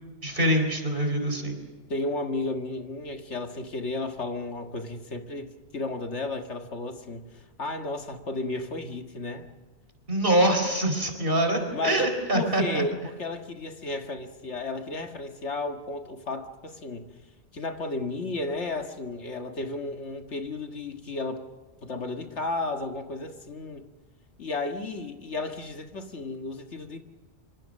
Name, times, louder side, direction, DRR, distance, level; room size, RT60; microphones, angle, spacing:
voice 1, 0.2-1.6 10.1-12.8, right 1 dB, 50° right, 5 dB, 4.4 m, -24 dB
voice 2, 1.9-9.5 11.7-12.1 12.3-17.1 17.5-21.5 21.8-23.9 24.4-27.0, left 2 dB, 80° left, 5 dB, 2.0 m, -33 dB
26.0 x 24.5 x 6.5 m, 1.3 s
omnidirectional pair, 1.2 m